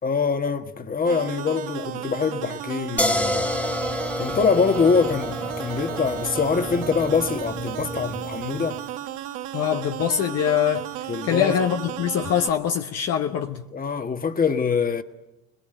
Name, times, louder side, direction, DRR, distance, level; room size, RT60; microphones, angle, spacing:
voice 1, 0.0-3.5 4.2-8.8 11.1-11.6 13.7-15.0, left 5 dB, 25° left, 1.6 m, -24 dB
sound 1, 1.0-12.5, right 13 dB, 75° right, 2.2 m, -34 dB
sound 2, 3.0-8.8, left 1 dB, 5° left, 1.0 m, -29 dB
voice 2, 9.5-10.9 11.2-13.6, left 9 dB, 50° left, 1.1 m, -23 dB
26.5 x 20.0 x 9.1 m
supercardioid pair, 95°, 32 cm